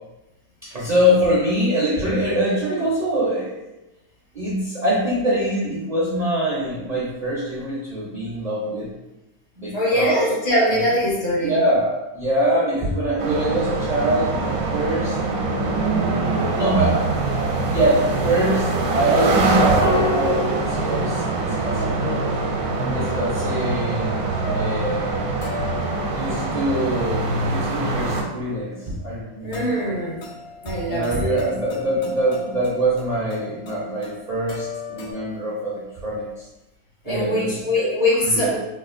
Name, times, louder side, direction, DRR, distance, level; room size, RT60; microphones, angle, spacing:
voice 1, 0.6-3.5 4.3-8.9 9.6-10.3 10.7-10.8 11.4-15.2 16.5-22.0 22.8-25.5 26.1-29.9 30.9-36.5 37.0-37.9 38.2-38.5, right 1 dB, 45° right, -7 dB, 0.5 m, -24 dB
voice 2, 9.7-11.6 29.4-30.2 30.6-31.4 37.0-38.6, left 1 dB, 55° left, -4 dB, 1.1 m, -22 dB
sound 1, 13.2-28.2, right 3 dB, 80° right, 1.0 m, -23 dB
sound 2, 19.6-35.1, left 2 dB, 85° left, 1.2 m, -34 dB
4.2 x 2.4 x 2.5 m, 0.96 s
omnidirectional pair, 1.5 m